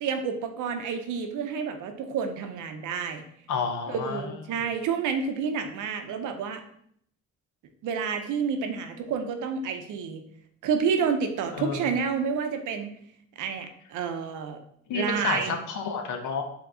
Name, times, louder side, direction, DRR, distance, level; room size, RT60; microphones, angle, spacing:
voice 1, 0.0-3.2 3.9-6.6 7.8-10.2 10.6-13.0 13.4-14.6 14.9-15.6, right 6 dB, 85° right, 7 dB, 0.7 m, -29 dB
voice 2, 3.5-4.4 11.5-11.9 14.9-16.4, left 5 dB, 75° left, 5 dB, 0.8 m, -30 dB
4.9 x 2.9 x 3.7 m, 0.68 s
cardioid pair, 90°, 30 cm